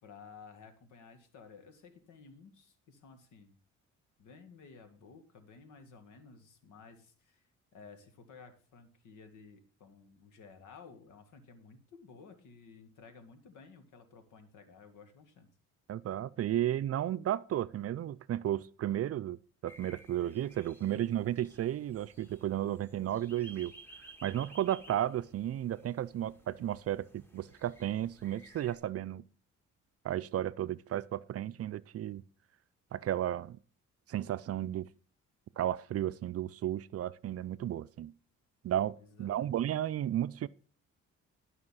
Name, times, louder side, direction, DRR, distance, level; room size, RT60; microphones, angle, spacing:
voice 1, 0.0-3.6 4.2-7.4 7.7-15.5 39.0-39.5, left 5 dB, 80° left, 1.9 m, -55 dB
voice 2, 15.9-19.4 19.6-23.7 24.2-29.2 30.0-32.2 32.9-33.6 34.1-34.9 35.6-38.1 38.6-40.5, right 12 dB, 50° right, 0.5 m, -33 dB
sound 1, 19.7-28.8, right 2 dB, 5° left, 1.9 m, -56 dB
12.0 x 5.6 x 5.7 m
cardioid pair, 90°, 30 cm